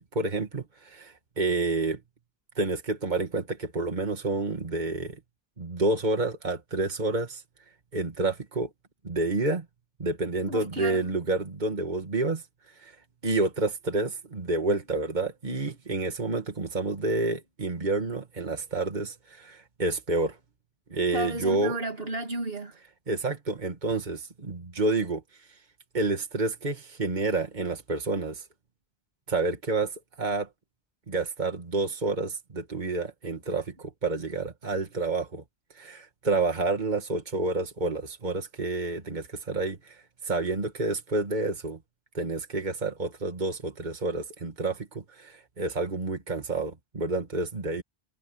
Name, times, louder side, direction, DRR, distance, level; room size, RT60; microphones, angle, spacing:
voice 1, 0.0-2.0 2.6-5.2 5.6-7.4 7.9-8.7 9.0-9.6 10.0-12.4 12.8-12.9 13.2-20.4 20.9-21.8 23.1-25.2 25.9-28.4 29.3-30.5 31.1-35.4 35.8-40.0 40.2-41.8 42.1-47.8, right 2 dB, 45° right, 2.3 m, -29 dB
voice 2, 10.5-11.1 21.1-22.8, right 1 dB, 70° right, 2.9 m, -32 dB
omnidirectional pair, 1.1 m